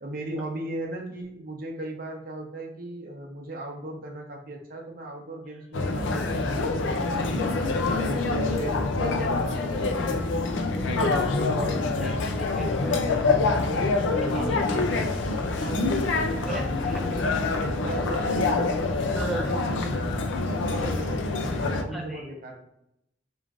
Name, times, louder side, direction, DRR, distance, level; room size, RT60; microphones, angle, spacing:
voice 1, 0.0-7.3 7.9-8.7 9.0-10.3 13.0-13.2 13.8-15.2 15.6-18.7 19.3-20.0 20.5-22.6, right 1 dB, 50° right, 1 dB, 0.7 m, -37 dB
sound 1, 5.7-21.8, left 3 dB, 85° left, 0.4 m, -26 dB
voice 2, 7.8-8.2 10.9-13.0 14.0-14.1 14.3-14.5 15.8-15.9 16.4-17.0 19.1-19.5 21.9-22.3, equal, ahead, -2 dB, 0.4 m, -35 dB
3.1 x 2.5 x 3.4 m, 0.79 s
head